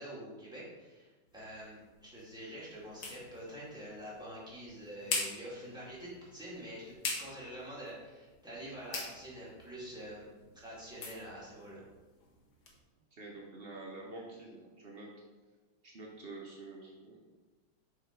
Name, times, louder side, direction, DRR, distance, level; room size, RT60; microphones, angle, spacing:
voice 1, 0.0-10.3 10.5-11.8, equal, ahead, -8 dB, 2.0 m, -46 dB
sound 1, 1.3-12.8, left 3 dB, 55° left, 1.5 m, -44 dB
voice 2, 13.1-15.1 15.8-17.2, right 2 dB, 75° right, -2 dB, 0.5 m, -47 dB
6.6 x 4.3 x 4.6 m, 1.3 s
omnidirectional pair, 2.3 m